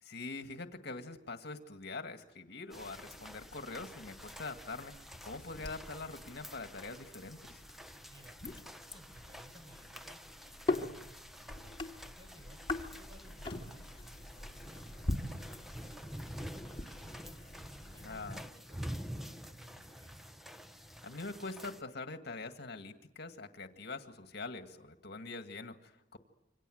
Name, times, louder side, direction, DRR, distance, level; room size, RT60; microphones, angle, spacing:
voice 1, 0.0-7.6 18.0-18.4 20.8-26.2, left 3 dB, 60° left, 7 dB, 2.0 m, -44 dB
sound 1, 2.7-18.5, left 2 dB, 30° left, 2.6 m, -43 dB
sound 2, 2.7-21.8, equal, ahead, 0.9 m, -48 dB
voice 2, 8.0-12.6 12.9-17.4 17.8-20.3, equal, 25° right, 5 dB, 6.0 m, -60 dB
28.0 x 26.0 x 7.9 m, 0.87 s
head